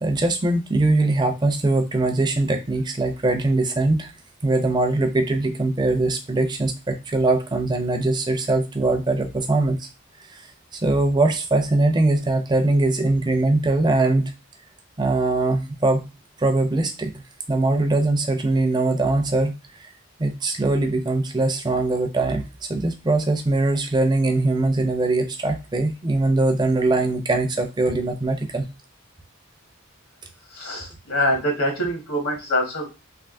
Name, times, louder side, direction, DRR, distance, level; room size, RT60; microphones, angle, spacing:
voice 1, 0.0-4.1 4.4-9.9 10.3-14.3 15.0-16.0 16.4-17.1 17.5-19.5 19.8-19.9 20.2-22.4 22.7-28.6, right 2 dB, 20° right, 5 dB, 0.4 m, -21 dB
voice 2, 30.5-32.9, left 1 dB, 80° left, 1 dB, 1.3 m, -24 dB
3.4 x 2.6 x 2.5 m, 0.28 s
head